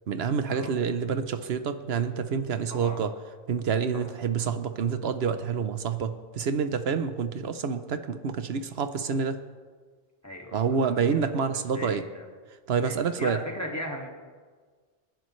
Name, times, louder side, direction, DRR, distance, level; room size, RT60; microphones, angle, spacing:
voice 1, 0.1-3.1 3.5-9.4 10.5-12.0 12.7-13.4, right 6 dB, 80° right, 10 dB, 1.0 m, -28 dB
voice 2, 2.7-3.0 3.9-4.1 10.2-11.3 11.7-12.3 12.8-14.1, equal, 15° left, 0 dB, 1.9 m, -38 dB
27.0 x 10.5 x 3.2 m, 1.5 s
omnidirectional pair, 1.0 m